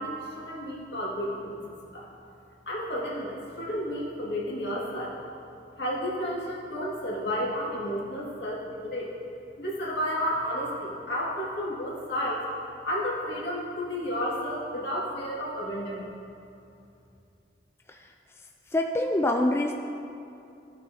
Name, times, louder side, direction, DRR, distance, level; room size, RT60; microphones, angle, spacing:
voice 1, 0.0-2.1 2.7-5.2 5.8-9.1 9.6-12.5 12.8-16.1, equal, 75° left, -5 dB, 2.0 m, -32 dB
voice 2, 18.7-19.7, left 1 dB, 15° left, 2 dB, 0.3 m, -25 dB
15.0 x 6.3 x 2.8 m, 2.6 s
head